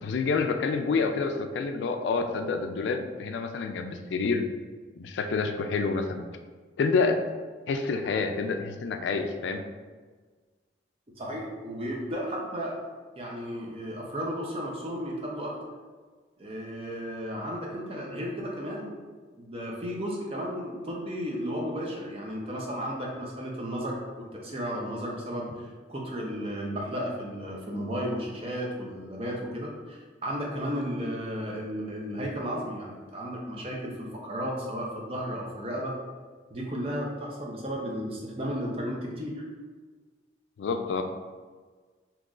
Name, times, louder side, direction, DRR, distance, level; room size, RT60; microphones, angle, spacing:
voice 1, 0.0-4.5 5.0-6.3 6.8-7.2 7.7-9.6 40.6-41.0, left 4 dB, 80° left, 6 dB, 0.3 m, -28 dB
voice 2, 11.2-12.8 13.2-15.6 16.4-18.9 19.4-35.9 36.5-39.4, equal, 30° right, -2 dB, 0.6 m, -34 dB
3.8 x 2.9 x 2.4 m, 1.4 s
head